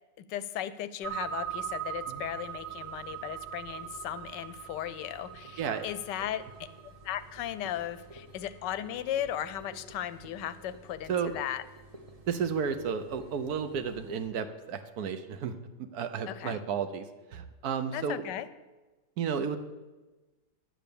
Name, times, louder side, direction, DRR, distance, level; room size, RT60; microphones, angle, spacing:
voice 1, 0.2-6.7 7.0-11.6 16.3-16.6 17.9-18.5, left 11 dB, 85° left, 14 dB, 1.3 m, -36 dB
sound 1, 1.0-14.3, right 9 dB, 25° right, 0.9 m, -43 dB
voice 2, 12.3-17.1 17.3-18.2 19.2-19.6, right 6 dB, 65° right, 9 dB, 1.2 m, -32 dB
10.0 x 7.6 x 7.0 m, 1.2 s
omnidirectional pair, 1.9 m